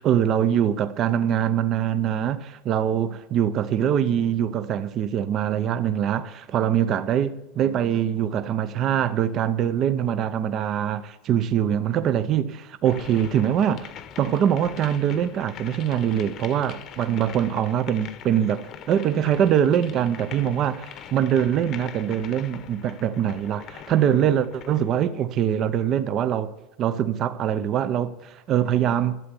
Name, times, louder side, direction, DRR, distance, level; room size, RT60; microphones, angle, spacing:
voice 1, 0.0-13.9 14.2-18.6 18.9-26.5 26.8-29.2, right 9 dB, 35° right, 0.6 m, -23 dB
sound 1, 12.8-24.9, left 9 dB, 35° left, 1.0 m, -43 dB
12.0 x 8.2 x 9.7 m
supercardioid pair, 165°, 0 cm